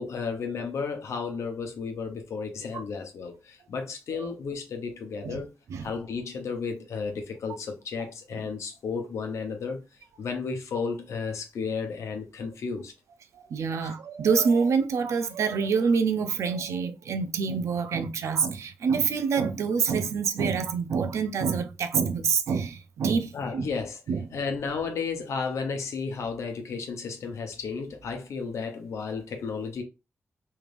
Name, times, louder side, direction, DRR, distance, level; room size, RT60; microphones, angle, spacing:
voice 1, 0.0-5.5 5.8-9.8 10.2-12.9 13.8-13.9 23.3-24.0 24.3-29.8, left 5 dB, 85° left, 0.8 m, -33 dB
voice 2, 13.3-23.7 24.1-24.3, right 6 dB, 85° right, 0.5 m, -26 dB
3.3 x 3.3 x 2.5 m
cardioid pair, 65°, 5 cm